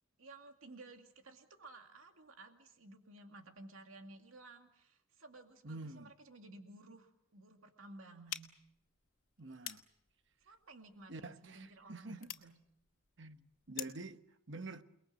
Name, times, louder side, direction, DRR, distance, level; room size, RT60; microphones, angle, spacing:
voice 1, 0.2-8.5 9.5-9.8 10.4-12.5, right 2 dB, 75° right, 2.4 m, -55 dB
voice 2, 5.6-6.1 9.4-9.8 11.1-12.3 13.2-14.8, right 2 dB, 55° right, 1.1 m, -47 dB
sound 1, 8.3-14.1, left 11 dB, 70° left, 2.0 m, -50 dB
29.0 x 21.0 x 7.6 m
head